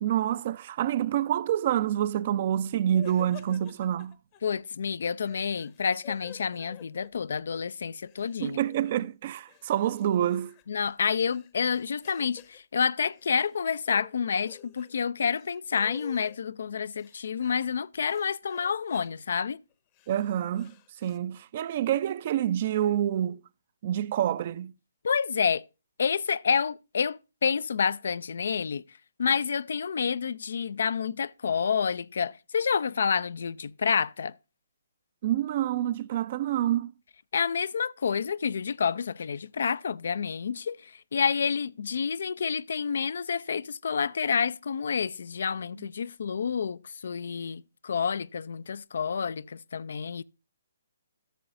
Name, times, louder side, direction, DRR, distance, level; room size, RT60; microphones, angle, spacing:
voice 1, 0.0-4.2 8.4-10.5 20.1-23.4 23.8-24.7 35.2-36.9 45.8-45.9, right 11 dB, 45° right, 0.4 m, -27 dB
sound 1, 2.9-4.4 5.2-7.6 7.9-9.1 9.5-12.6 13.0-13.6 13.9-14.9 15.2-16.4 17.0-17.8 18.1-19.1 19.7-21.2, left 13 dB, 30° left, 0.8 m, -51 dB
voice 2, 4.4-8.6 10.7-19.6 25.0-25.6 26.0-28.8 29.2-34.3 37.3-50.2, left 6 dB, 65° left, 0.4 m, -29 dB
13.5 x 6.8 x 2.5 m
figure-of-eight pair, 135°, 0 cm